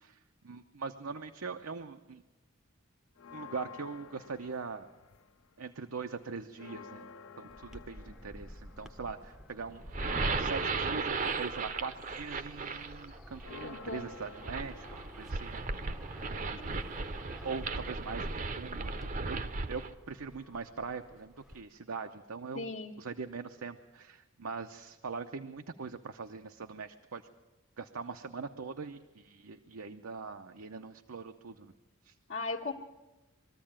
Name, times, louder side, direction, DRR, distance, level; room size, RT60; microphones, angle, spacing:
voice 1, 0.0-2.2 3.3-4.9 5.6-7.1 7.4-9.8 10.1-15.6 16.3-17.2 17.4-19.4 19.7-22.7 23.0-27.2 27.8-31.7 32.0-32.1, right 4 dB, 85° right, 6 dB, 0.7 m, -42 dB
sound 1, 3.2-5.5 5.9-16.4, left 6 dB, 80° left, 0.7 m, -52 dB
sound 2, 7.5-21.6, equal, ahead, 0.6 m, -52 dB
sound 3, 9.8-19.9, right 4 dB, 35° right, 0.6 m, -36 dB
voice 2, 13.6-14.1 16.5-16.6 22.5-22.9 32.3-32.7, left 3 dB, 65° left, -4 dB, 1.3 m, -37 dB
22.0 x 14.0 x 8.8 m, 1.1 s
head